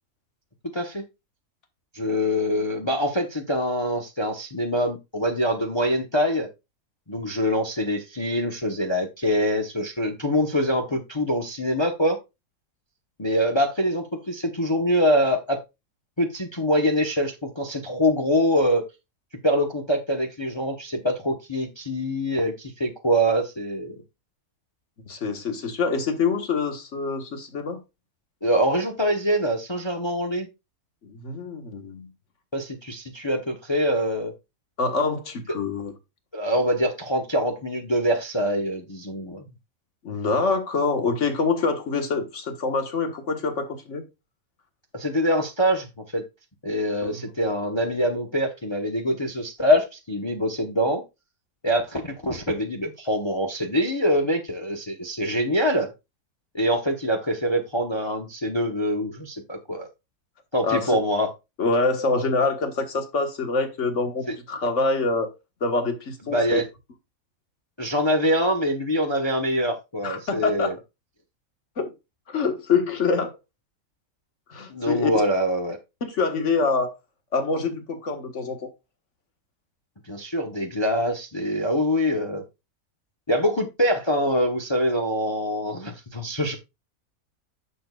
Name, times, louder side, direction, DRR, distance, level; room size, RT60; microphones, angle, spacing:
voice 1, 0.6-1.0 1.9-6.5 7.1-12.2 13.2-15.6 16.2-18.8 19.4-23.9 28.4-30.5 32.5-34.3 36.3-39.5 44.9-46.2 46.6-51.0 51.6-55.9 56.5-59.9 60.5-61.3 64.3-64.4 66.3-66.6 67.8-70.7 74.7-75.8 80.1-82.4 83.3-86.6, equal, 20° left, 0.9 m, -24 dB
voice 2, 25.1-27.8 31.0-32.1 34.8-35.9 40.0-44.0 47.0-47.3 60.6-61.0 61.6-65.3 65.6-66.6 70.0-70.8 71.8-71.9 72.3-73.3 74.5-75.1 76.0-76.9 77.3-78.7, left 4 dB, 50° left, 1.7 m, -25 dB
10.0 x 7.0 x 2.4 m
omnidirectional pair, 1.6 m